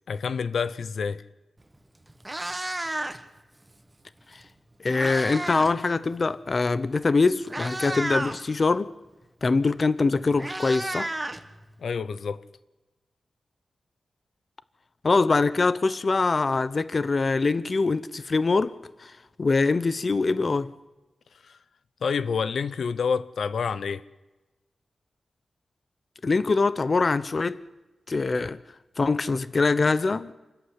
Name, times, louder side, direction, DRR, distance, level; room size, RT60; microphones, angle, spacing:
voice 1, 0.1-1.2 11.8-12.4 21.4-21.6 22.0-24.0, left 5 dB, 80° left, 0.8 m, -28 dB
Meow, 1.6-1.7 2.1-3.4 4.4-5.8 6.0-6.3 7.0-7.1 7.4-8.4 9.7-9.8 10.0-11.9, right 1 dB, 15° right, 1.5 m, -32 dB
voice 2, 4.8-8.9 9.4-11.1 15.0-18.7 19.0-19.1 19.4-20.7 26.2-27.6 28.1-28.6 29.0-30.3, left 3 dB, 40° left, 0.7 m, -23 dB
27.5 x 14.0 x 9.8 m
wide cardioid pair, 110°, 0 cm